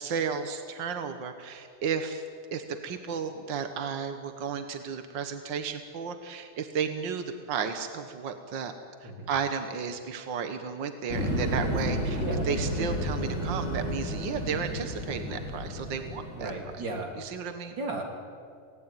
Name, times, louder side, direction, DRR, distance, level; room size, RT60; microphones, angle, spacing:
voice 1, 0.0-2.2 2.5-8.7 9.0-16.5 17.2-17.8, right 6 dB, 55° right, 7 dB, 1.3 m, -33 dB
sound 1, 11.1-16.9, equal, 20° left, 4.4 m, -32 dB
voice 2, 16.3-17.1 17.8-18.0, right 2 dB, 35° right, 1 dB, 3.8 m, -34 dB
28.5 x 18.5 x 9.1 m, 2.3 s
omnidirectional pair, 3.6 m